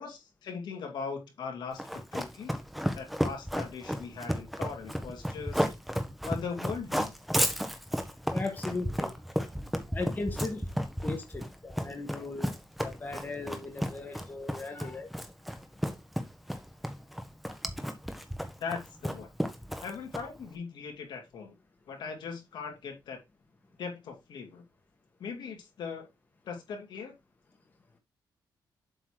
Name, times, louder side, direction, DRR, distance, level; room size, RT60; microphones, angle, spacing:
voice 1, 0.0-2.6 2.9-5.6 6.2-7.1 18.6-19.3 19.8-21.6 21.9-23.2 23.8-24.6 25.2-26.1 26.4-27.1, left 5 dB, 80° left, 2.9 m, -39 dB
Run, 1.8-20.5, equal, ahead, 1.2 m, -32 dB
voice 2, 8.3-9.1 9.9-10.6 11.0-12.5 12.8-15.1, left 3 dB, 25° left, 1.5 m, -37 dB
7.8 x 4.1 x 4.8 m
wide cardioid pair, 135°, 8 cm